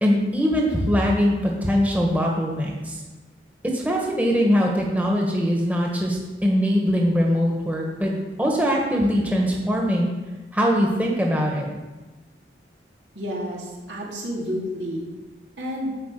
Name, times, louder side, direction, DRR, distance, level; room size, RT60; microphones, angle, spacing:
voice 1, 0.0-3.0 3.6-8.1 8.4-10.1 10.5-11.7, equal, 10° right, -1 dB, 1.4 m, -22 dB
voice 2, 13.1-15.0 15.6-15.9, equal, 90° right, -4 dB, 3.2 m, -30 dB
11.5 x 5.0 x 7.6 m, 1.2 s
head